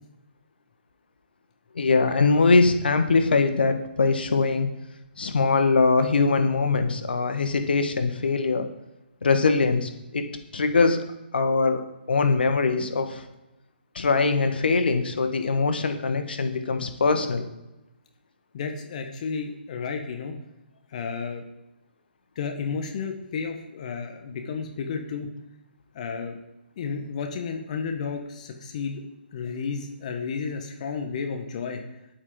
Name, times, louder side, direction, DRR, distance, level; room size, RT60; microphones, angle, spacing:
voice 1, 1.7-4.7 5.2-8.7 9.2-10.2 10.5-11.0 11.3-11.8 12.1-13.2 13.9-17.4, left 4 dB, 60° left, 7 dB, 1.6 m, -22 dB
voice 2, 18.5-20.4 20.9-21.4 22.3-25.3 25.9-26.4 26.8-29.0 29.3-31.8, left 5 dB, 40° left, 4 dB, 1.5 m, -32 dB
10.5 x 8.8 x 5.3 m, 0.95 s
figure-of-eight pair, 140°, 6 cm